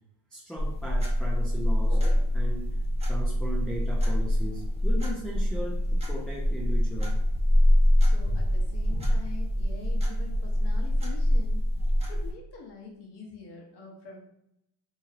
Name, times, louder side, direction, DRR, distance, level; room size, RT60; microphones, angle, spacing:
voice 1, 0.3-2.7 3.0-7.1, equal, ahead, -3 dB, 0.3 m, -38 dB
sound 1, 0.6-12.3, equal, 15° right, 0.8 m, -25 dB
voice 2, 8.0-11.6 12.1-14.2, left 4 dB, 65° left, -1 dB, 1.1 m, -45 dB
3.0 x 2.7 x 2.5 m, 0.79 s
cardioid pair, 100°, 44 cm